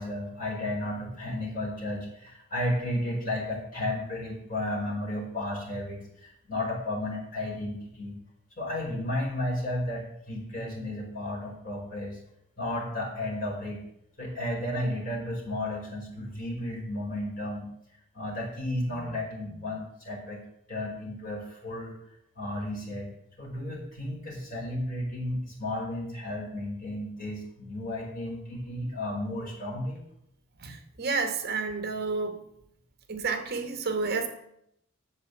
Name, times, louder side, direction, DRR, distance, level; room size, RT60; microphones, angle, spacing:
voice 1, 0.0-8.2 8.6-12.2 12.6-13.8 14.2-17.7 18.1-20.4 20.7-22.0 22.4-23.1 23.4-30.0, left 1 dB, 40° left, -3 dB, 5.1 m, -33 dB
voice 2, 30.6-32.4 33.1-34.3, right 4 dB, 50° right, 7 dB, 1.2 m, -30 dB
9.5 x 7.6 x 8.3 m, 0.76 s
head